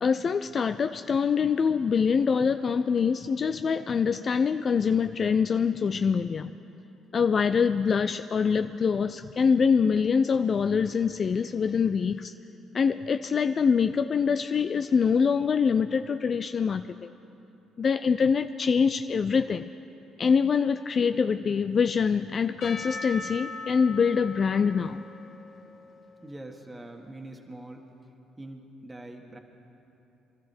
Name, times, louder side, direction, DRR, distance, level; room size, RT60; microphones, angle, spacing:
voice 1, 0.0-6.5 7.1-12.3 12.7-17.1 17.8-19.7 20.2-25.0, left 6 dB, 50° left, 9 dB, 0.4 m, -24 dB
Percussion / Church bell, 22.6-26.8, left 3 dB, 70° left, 2.6 m, -41 dB
voice 2, 26.2-27.9 28.4-29.4, right 1 dB, 20° right, 2 dB, 1.6 m, -43 dB
24.5 x 13.0 x 4.4 m, 2.9 s
supercardioid pair, 60°, 0 cm